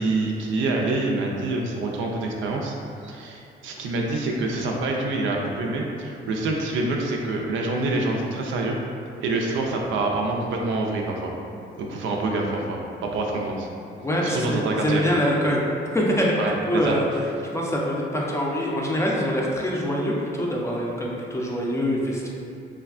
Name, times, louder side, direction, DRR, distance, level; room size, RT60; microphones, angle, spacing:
voice 1, 0.0-2.7 3.0-8.8 9.2-11.3 11.8-13.7 14.2-15.0 16.4-16.5 16.8-17.0, right 2 dB, 75° right, 0 dB, 0.4 m, -26 dB
voice 2, 14.0-15.6 15.9-17.0 17.5-22.3, equal, 15° left, -3 dB, 0.4 m, -24 dB
3.3 x 2.2 x 2.3 m, 2.5 s
cardioid pair, 90°, 20 cm